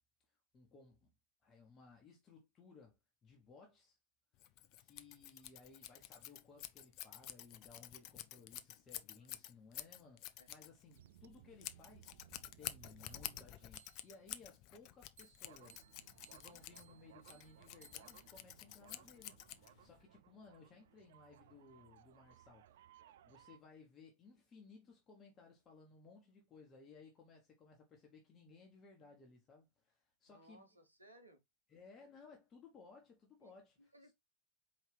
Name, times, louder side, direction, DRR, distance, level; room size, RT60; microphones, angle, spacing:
voice 1, 0.5-1.1 1.4-2.9 3.2-4.0 4.8-12.2 12.6-22.9 23.3-30.7 31.7-34.1, left 4 dB, 25° left, 1.2 m, -61 dB
Scissors, 4.4-20.0, left 13 dB, 40° left, 0.4 m, -50 dB
sound 1, 10.9-14.3 15.2-23.6, right 12 dB, 55° right, 0.3 m, -63 dB
voice 2, 30.3-31.4 33.4-34.1, right 1 dB, 85° right, 1.0 m, -63 dB
4.6 x 3.2 x 3.3 m
figure-of-eight pair, 90°, 0 cm